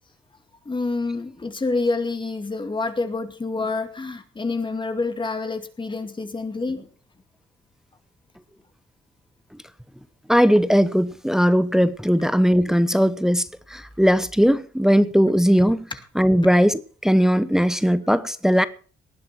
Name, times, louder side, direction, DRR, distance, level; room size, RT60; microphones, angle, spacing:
voice 1, 0.7-6.9, left 3 dB, 25° left, 2.4 m, -27 dB
voice 2, 10.3-15.9 16.2-18.6, equal, ahead, 0.9 m, -19 dB
19.0 x 10.5 x 4.6 m
cardioid pair, 90°, 20 cm